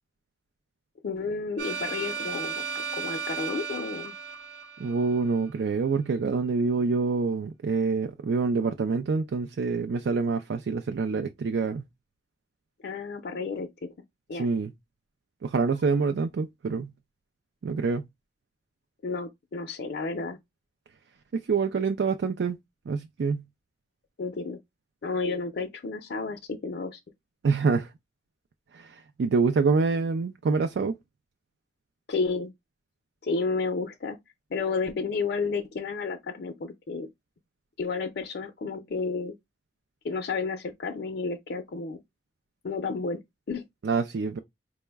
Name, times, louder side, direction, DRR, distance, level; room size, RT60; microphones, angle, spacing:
voice 1, 1.0-2.6 2.9-4.1 12.8-13.9 14.3-14.5 19.0-20.4 24.2-24.6 25.0-27.0 32.1-32.5 33.2-34.2 34.5-37.1 37.8-39.3 40.0-42.0 42.6-43.2 43.5-43.6, left 4 dB, 60° left, 0.5 m, -31 dB
sound 1, 1.6-5.5, right 5 dB, 90° right, 0.9 m, -35 dB
voice 2, 4.8-11.8 14.3-14.7 15.4-16.9 17.6-18.0 21.5-22.6 22.9-23.4 27.4-27.9 28.7-30.9 43.8-44.4, right 4 dB, 70° right, 0.4 m, -26 dB
4.5 x 2.1 x 3.3 m
head